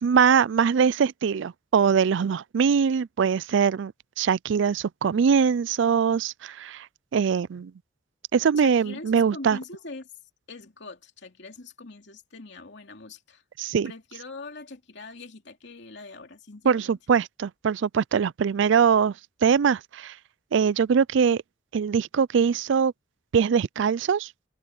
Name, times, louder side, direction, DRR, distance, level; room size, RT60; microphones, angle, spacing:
voice 1, 0.0-3.9 4.2-6.9 7.1-7.7 8.3-9.6 13.6-13.9 16.6-19.1 19.4-20.1 20.5-21.4 21.7-22.9 23.3-24.3, right 6 dB, 65° right, 0.4 m, -22 dB
voice 2, 8.6-10.1 10.5-13.4 13.8-17.0, left 3 dB, 60° left, 2.8 m, -42 dB
head